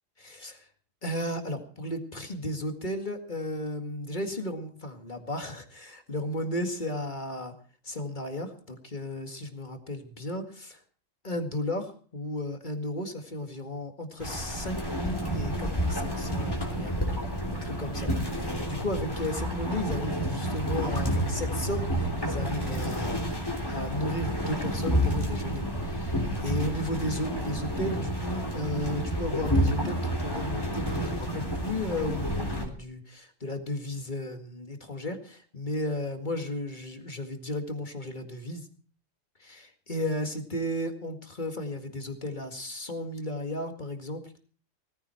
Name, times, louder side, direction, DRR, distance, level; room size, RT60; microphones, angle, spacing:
voice 1, 0.2-0.7 1.0-7.5 7.8-10.8 11.2-17.0 17.5-38.7 39.4-44.2, left 1 dB, 35° left, 6 dB, 2.1 m, -34 dB
sound 1, 14.2-32.7, equal, 15° left, 3.2 m, -30 dB
18.5 x 15.0 x 4.4 m, 0.42 s
omnidirectional pair, 1.3 m